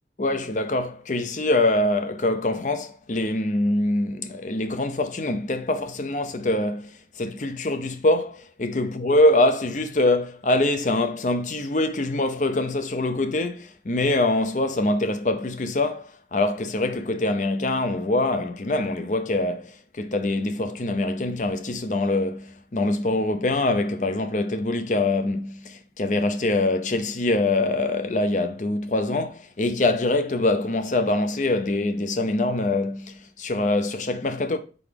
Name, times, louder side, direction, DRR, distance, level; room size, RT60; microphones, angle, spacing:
voice 1, 0.2-34.6, left 2 dB, 45° left, 0.6 m, -24 dB
4.7 x 3.9 x 5.2 m
head